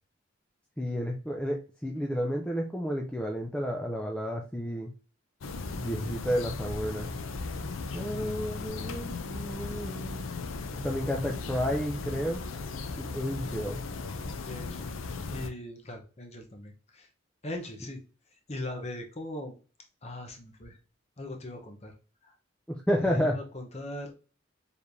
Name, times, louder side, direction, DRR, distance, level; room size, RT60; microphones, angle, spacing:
voice 1, 0.8-4.9 5.8-7.1 7.9-10.2 10.7-12.4 13.0-13.8 22.7-23.4, equal, 5° left, 0 dB, 0.5 m, -31 dB
sound 1, 5.4-15.5, left 3 dB, 80° left, 0.5 m, -37 dB
voice 2, 7.9-8.3 14.4-17.1 17.4-18.0 18.5-19.6 20.0-20.8 21.2-21.9 22.2-22.3 23.0-24.1, left 1 dB, 35° left, 4 dB, 0.9 m, -40 dB
4.7 x 3.3 x 2.6 m, 0.36 s
head